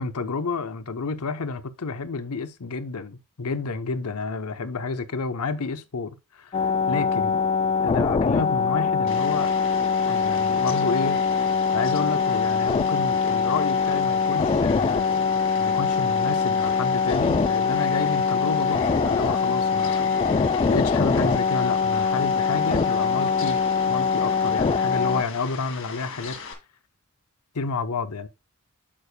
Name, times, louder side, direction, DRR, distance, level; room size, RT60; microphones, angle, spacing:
voice 1, 0.0-7.4 7.8-9.5 10.1-11.2 11.7-23.6 23.9-26.3 27.5-28.3, left 4 dB, 80° left, 0.8 m, -30 dB
sound 1, 6.5-25.2, left 5 dB, 25° left, 0.3 m, -23 dB
Fowl, 9.1-26.5, left 5 dB, 60° left, 1.8 m, -40 dB
8.7 x 6.9 x 2.2 m
head